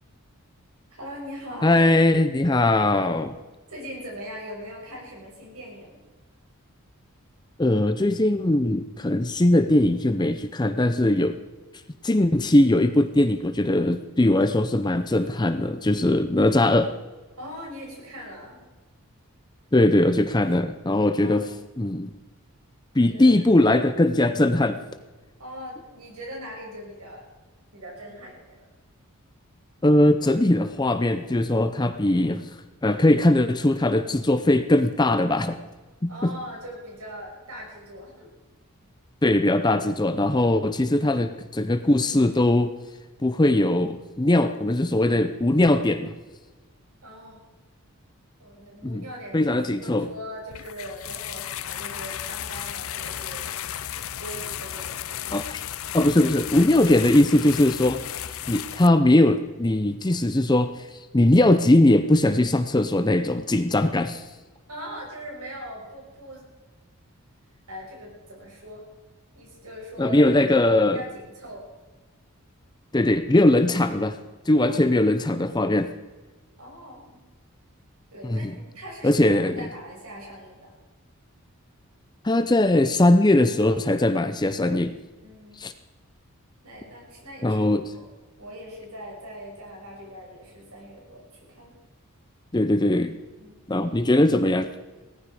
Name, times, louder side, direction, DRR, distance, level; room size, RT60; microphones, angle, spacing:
voice 1, 0.9-1.8 3.7-6.0 17.4-18.6 21.2-21.5 23.1-23.7 25.4-27.3 27.7-28.7 36.1-38.3 47.0-47.5 48.4-53.5 54.2-55.3 64.7-66.5 67.7-68.9 69.3-70.2 70.9-71.6 74.6-75.1 76.6-77.2 78.1-80.7 85.2-85.7 86.6-88.1 88.4-91.8 93.4-93.6, equal, 85° right, -2 dB, 6.3 m, -41 dB
voice 2, 1.6-3.4 7.6-11.4 12.0-16.9 19.7-21.5 21.8-22.1 22.9-24.8 29.8-32.5 32.8-35.6 36.0-36.3 39.2-42.7 43.2-46.1 48.8-49.0 49.3-50.1 55.3-55.6 55.9-58.0 58.5-64.2 70.0-71.0 72.9-74.2 74.5-75.9 78.2-78.6 79.0-79.7 82.2-84.9 85.6-85.7 87.4-87.9 92.5-93.2 93.7-94.7, left 1 dB, 20° left, 9 dB, 0.6 m, -20 dB
sound 1, 50.5-58.9, left 10 dB, 70° left, 0.6 m, -34 dB
18.0 x 14.5 x 5.0 m, 1.2 s
head